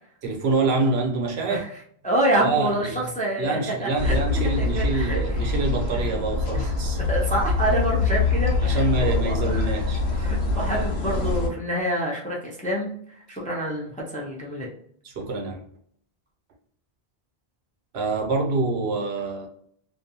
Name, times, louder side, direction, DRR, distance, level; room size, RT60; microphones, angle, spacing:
voice 1, 0.2-1.7 2.4-3.1 3.4-7.0 8.6-10.3 15.0-15.6 17.9-19.5, right 3 dB, 85° right, 1.0 m, -26 dB
voice 2, 2.0-4.1 4.6-5.2 7.1-9.7 10.1-12.9 13.3-14.7, right 1 dB, 10° left, 0.4 m, -27 dB
sound 1, 4.0-11.5, left 3 dB, 90° left, 0.9 m, -24 dB
2.6 x 2.2 x 2.7 m
omnidirectional pair, 1.1 m